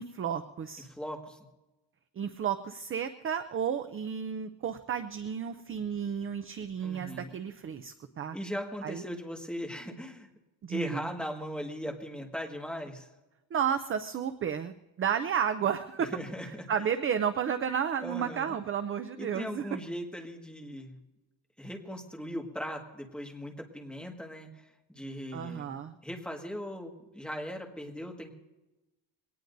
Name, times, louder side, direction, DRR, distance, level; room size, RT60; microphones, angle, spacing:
voice 1, 0.0-0.9 2.2-8.4 8.8-9.0 10.6-11.1 13.5-16.1 16.5-19.7 25.3-26.0, right 8 dB, 30° right, 9 dB, 0.5 m, -32 dB
voice 2, 0.9-1.4 6.8-7.3 8.3-10.3 10.7-13.1 16.0-16.7 18.0-18.6 19.2-21.0 21.6-25.8 26.0-28.3, equal, ahead, 1 dB, 1.7 m, -39 dB
22.5 x 18.5 x 2.6 m, 1.0 s
cardioid pair, 160°, 46 cm